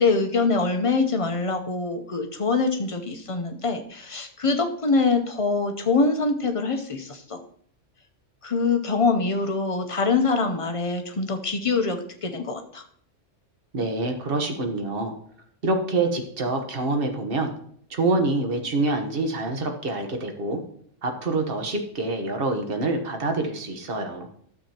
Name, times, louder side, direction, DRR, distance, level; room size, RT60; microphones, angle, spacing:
voice 1, 0.0-7.4 8.4-12.8, left 4 dB, 35° left, 5 dB, 0.6 m, -24 dB
voice 2, 13.7-15.1 15.6-17.5 17.9-20.6 21.0-24.3, right 2 dB, 50° right, 4 dB, 1.2 m, -26 dB
12.0 x 7.1 x 2.9 m, 0.62 s
omnidirectional pair, 1.3 m